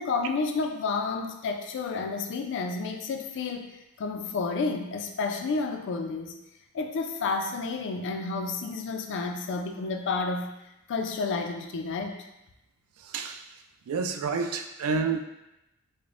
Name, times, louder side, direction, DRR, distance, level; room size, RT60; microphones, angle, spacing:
voice 1, 0.0-6.3 6.7-10.5 10.9-12.2, left 4 dB, 55° left, 4 dB, 0.4 m, -30 dB
voice 2, 13.0-13.4 13.9-15.2, right 5 dB, 70° right, 7 dB, 0.3 m, -29 dB
4.9 x 2.0 x 2.4 m, 0.91 s
head